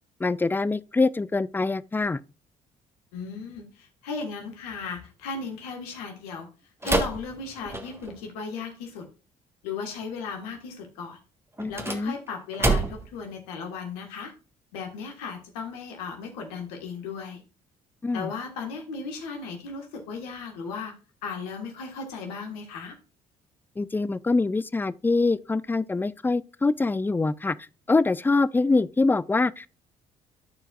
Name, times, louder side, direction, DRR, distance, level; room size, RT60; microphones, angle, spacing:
voice 1, 0.2-2.2 11.6-12.1 18.0-18.3 23.8-27.6 27.9-29.8, left 3 dB, 10° left, 0.3 m, -24 dB
voice 2, 3.1-6.5 6.8-9.1 9.6-11.2 11.7-14.3 14.7-17.4 18.1-20.9 21.2-23.0, left 5 dB, 80° left, 1.6 m, -36 dB
sound 1, 6.8-8.2 11.5-13.2, right 2 dB, 15° right, 1.4 m, -28 dB
13.5 x 4.5 x 2.4 m
hypercardioid pair, 50°, 20 cm